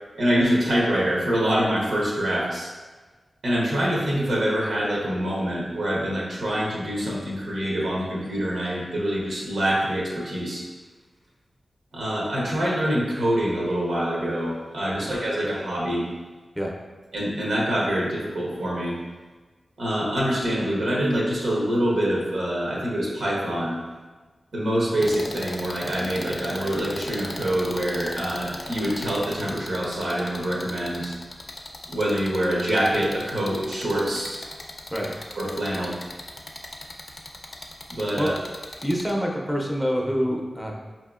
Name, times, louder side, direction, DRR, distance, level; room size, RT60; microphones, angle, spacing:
voice 1, 0.1-2.7 3.4-10.6 11.9-16.1 17.1-18.9 19.8-23.8 24.5-31.1 31.9-34.4 35.4-35.9 37.9-38.3, equal, 85° right, -5 dB, 0.9 m, -25 dB
sound 1, 25.0-39.1, left 2 dB, 50° left, 0.4 m, -38 dB
voice 2, 38.8-40.7, equal, ahead, -1 dB, 0.5 m, -26 dB
4.8 x 2.8 x 2.4 m, 1.3 s
cardioid pair, 60°, 0 cm